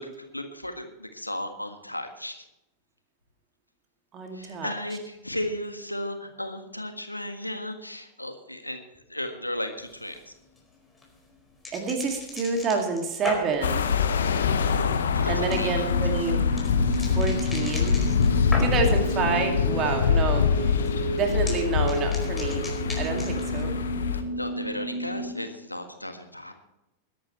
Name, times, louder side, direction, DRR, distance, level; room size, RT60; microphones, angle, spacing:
voice 1, 0.0-2.4 4.3-10.3 15.1-15.8 24.1-26.5, left 1 dB, 85° left, 7 dB, 1.6 m, -35 dB
voice 2, 4.1-4.7 11.7-13.8 15.3-16.4 17.1-18.0 18.6-20.8 21.1-22.7 23.0-23.7, right 4 dB, 30° right, 3 dB, 2.4 m, -28 dB
sound 1, 9.8-19.1 19.4-20.0 20.2-23.6, left 2 dB, 10° left, 4.6 m, -39 dB
sound 2, 13.6-24.2, left 6 dB, 65° left, 1.3 m, -25 dB
sound 3, 13.8-25.4, right 2 dB, 50° right, 3.3 m, -33 dB
21.0 x 11.0 x 3.2 m, 0.89 s
figure-of-eight pair, 90°, 0 cm